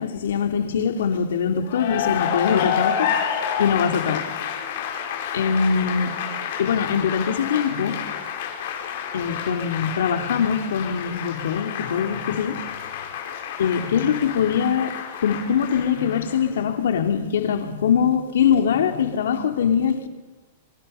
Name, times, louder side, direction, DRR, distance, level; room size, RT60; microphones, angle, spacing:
voice 1, 0.0-4.4 5.3-6.2 6.6-8.0 9.1-12.6 13.6-14.9 15.2-20.1, left 7 dB, 85° left, 5 dB, 2.7 m, -23 dB
Cheering / Applause, 1.6-16.6, left 8 dB, 45° left, 4.7 m, -29 dB
25.0 x 24.5 x 5.6 m, 1.3 s
supercardioid pair, 180°, 0 cm